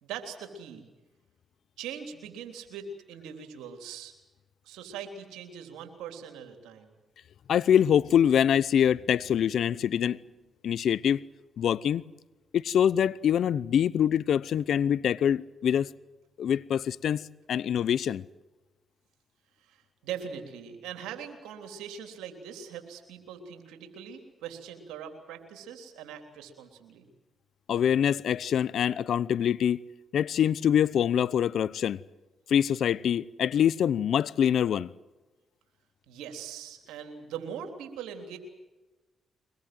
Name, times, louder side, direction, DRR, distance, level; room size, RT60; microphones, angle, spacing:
voice 1, 0.0-0.9 1.8-4.1 4.6-6.9 19.6-27.1 36.1-38.4, right 7 dB, 85° right, 3.4 m, -41 dB
voice 2, 7.5-10.2 10.6-11.2 11.6-12.0 12.5-15.9 16.4-18.2 27.7-29.8 30.1-32.0 32.5-34.9, left 9 dB, 75° left, 0.7 m, -25 dB
24.0 x 21.0 x 7.8 m
supercardioid pair, 50°, 0 cm